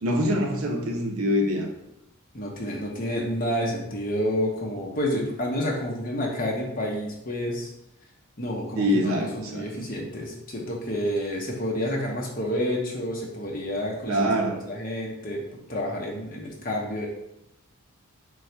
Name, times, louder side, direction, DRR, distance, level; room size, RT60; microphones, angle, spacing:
voice 1, 0.0-1.7 8.8-9.7 14.1-14.6, equal, 80° right, 1 dB, 0.8 m, -24 dB
voice 2, 2.3-7.7 8.4-17.1, equal, 40° left, -2 dB, 0.8 m, -29 dB
3.9 x 2.3 x 4.4 m, 0.82 s
head